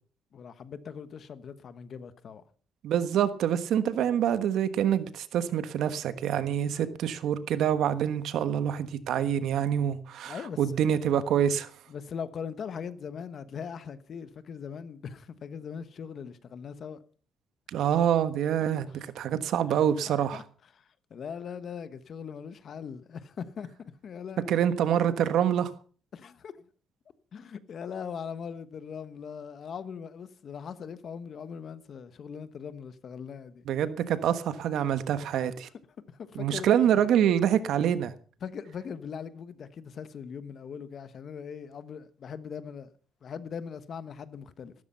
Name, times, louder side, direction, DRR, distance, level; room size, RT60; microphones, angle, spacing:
voice 1, 0.3-2.4 10.2-10.8 11.9-17.0 18.9-19.1 19.7-19.8 20.1-20.4 20.7-24.5 26.1-26.5 27.3-33.6 35.3-35.5 36.1-37.0 38.4-42.9 43.2-44.7, left 7 dB, 45° left, 1.2 m, -40 dB
voice 2, 2.8-11.7 17.7-20.4 24.5-25.7 33.7-35.7 36.3-38.1, right 9 dB, 70° right, 1.3 m, -26 dB
14.5 x 13.0 x 5.6 m
cardioid pair, 155°, 0 cm